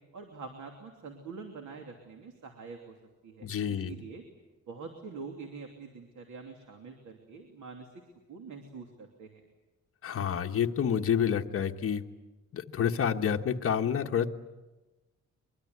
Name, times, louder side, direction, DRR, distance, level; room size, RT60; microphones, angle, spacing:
voice 1, 0.1-2.9 3.2-4.2 4.7-7.9 8.3-9.4, right 4 dB, 75° right, 3 dB, 3.0 m, -45 dB
voice 2, 3.4-3.9 10.0-12.0 12.5-14.3, left 8 dB, 50° left, 4 dB, 1.2 m, -28 dB
23.5 x 23.5 x 9.5 m, 1.1 s
wide cardioid pair, 180°, 30 cm